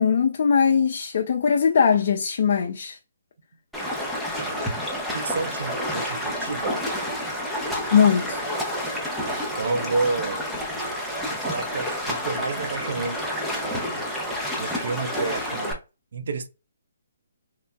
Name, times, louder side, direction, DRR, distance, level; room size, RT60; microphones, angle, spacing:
voice 1, 0.0-3.0 7.9-8.5, left 7 dB, 55° left, 0.5 m, -20 dB
Stream, 3.7-15.7, equal, ahead, 0.8 m, -29 dB
voice 2, 5.1-6.8 9.3-10.5 11.3-13.2 13.6-14.0 14.6-15.8 16.1-16.5, right 3 dB, 65° right, 0.6 m, -30 dB
3.3 x 2.9 x 2.3 m
hypercardioid pair, 150°, 0 cm